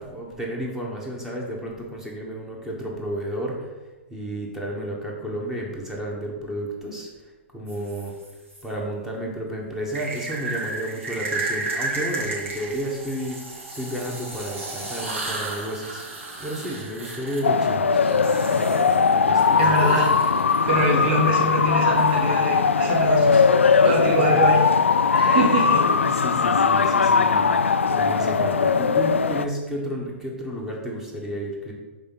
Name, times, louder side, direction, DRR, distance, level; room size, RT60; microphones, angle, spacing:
voice 1, 0.0-3.7 4.1-7.1 7.5-8.1 8.6-13.4 13.7-16.0 16.4-20.2 23.3-23.5 24.1-24.5 25.2-25.3 25.8-27.4 27.9-31.7, right 1 dB, 5° right, -2 dB, 1.6 m, -32 dB
sound 1, 7.7-8.6 9.9-20.6 22.0-23.8, right 2 dB, 80° right, 2.3 m, -34 dB
sound 2, 17.4-29.5, left 5 dB, 80° left, 0.4 m, -19 dB
voice 2, 19.5-20.1 20.7-23.4 23.8-24.6 25.1-25.8, right 1 dB, 55° right, -3 dB, 2.2 m, -23 dB
5.4 x 4.4 x 5.7 m, 1.2 s
figure-of-eight pair, 115°, 7 cm